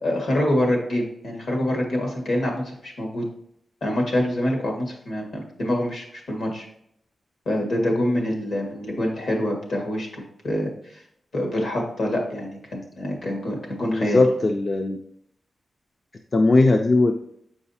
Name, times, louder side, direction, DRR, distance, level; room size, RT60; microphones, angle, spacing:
voice 1, 0.0-3.3 3.8-6.7 7.4-11.0 11.3-14.2, left 1 dB, 60° left, 0 dB, 1.6 m, -26 dB
voice 2, 13.9-15.0 16.3-17.1, left 2 dB, 35° left, 5 dB, 0.4 m, -19 dB
7.6 x 4.9 x 2.7 m, 0.72 s
wide cardioid pair, 175°, 0 cm